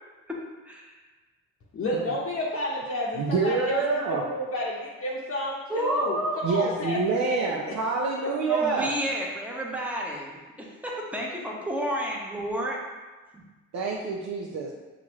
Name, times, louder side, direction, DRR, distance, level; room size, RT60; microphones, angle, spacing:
voice 1, 0.3-0.9 5.7-6.4 8.5-12.8 13.3-13.4, right 1 dB, 5° right, -3 dB, 0.9 m, -31 dB
voice 2, 1.7-6.2 6.5-7.8, left 1 dB, 45° left, -5 dB, 0.8 m, -31 dB
voice 3, 3.1-4.2 6.4-8.9 13.7-14.7, right 4 dB, 60° right, -3 dB, 0.6 m, -26 dB
5.9 x 2.4 x 3.0 m, 1.3 s
cardioid pair, 90°, 30 cm